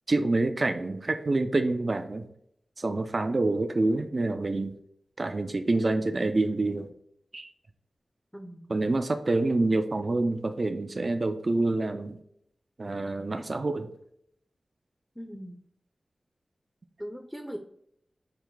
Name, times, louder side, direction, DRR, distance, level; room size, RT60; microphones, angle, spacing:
voice 1, 0.1-2.3 2.8-4.7 5.2-6.9 7.3-7.5 8.7-12.2 12.8-13.9, right 2 dB, 55° right, 7 dB, 0.4 m, -27 dB
voice 2, 8.3-8.9 15.2-15.6 17.0-17.6, equal, ahead, 4 dB, 0.5 m, -40 dB
4.4 x 2.1 x 3.8 m, 0.70 s
cardioid pair, 50°, 0 cm